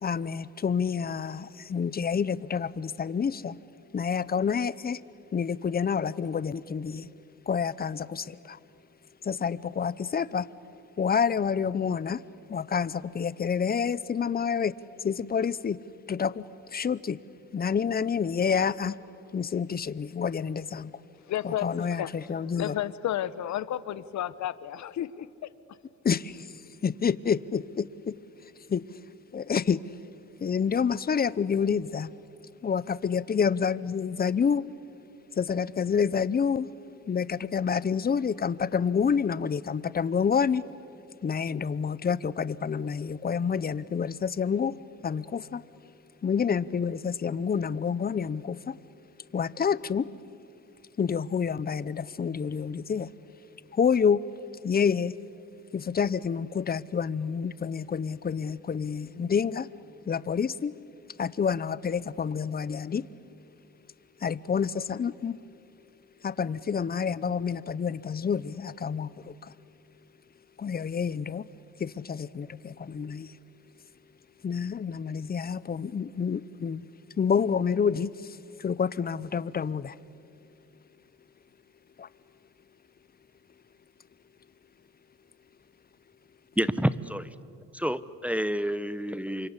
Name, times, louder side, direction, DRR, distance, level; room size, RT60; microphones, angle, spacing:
voice 1, 0.0-3.6 3.9-5.0 5.3-7.1 7.5-8.6 9.2-10.5 11.0-12.2 12.5-15.8 16.1-17.2 17.5-19.0 19.3-21.0 21.4-22.8 26.0-28.2 28.7-29.0 29.3-29.8 30.4-32.1 32.6-34.6 35.3-36.7 37.1-40.7 41.2-45.6 46.2-48.8 49.3-50.1 51.0-53.1 53.7-54.2 54.6-55.2 55.7-59.7 60.1-60.7 61.2-63.1 64.2-65.4 66.2-69.5 70.6-71.5 71.8-73.3 74.4-76.8 77.2-80.0 82.0-82.1, left 6 dB, 30° left, 0.8 m, -28 dB
voice 2, 21.3-22.1 22.6-25.5, left 11 dB, 70° left, 0.9 m, -32 dB
voice 3, 86.6-87.3 87.7-89.5, equal, 5° right, 0.8 m, -28 dB
28.5 x 25.0 x 8.3 m
cardioid pair, 90°, 30 cm